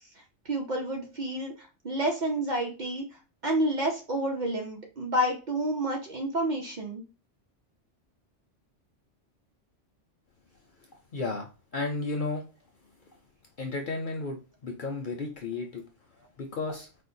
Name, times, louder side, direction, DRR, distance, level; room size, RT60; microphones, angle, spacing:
voice 1, 0.4-3.0 3.4-7.0, right 1 dB, 45° right, 0 dB, 0.7 m, -29 dB
voice 2, 11.1-12.4 13.6-15.8 16.4-16.9, left 3 dB, 55° left, 2 dB, 0.6 m, -33 dB
4.3 x 2.1 x 2.6 m, 0.34 s
omnidirectional pair, 1.3 m